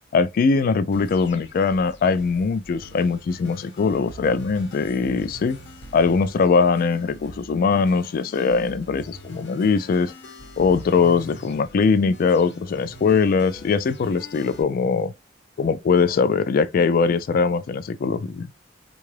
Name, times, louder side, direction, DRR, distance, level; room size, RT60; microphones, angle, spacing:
voice 1, 0.1-5.6 5.9-10.1 10.6-15.1 15.6-18.5, left 5 dB, 50° left, 0.3 m, -21 dB
sound 1, 0.9-14.6, equal, 65° left, 0.9 m, -43 dB
3.6 x 2.3 x 3.2 m
head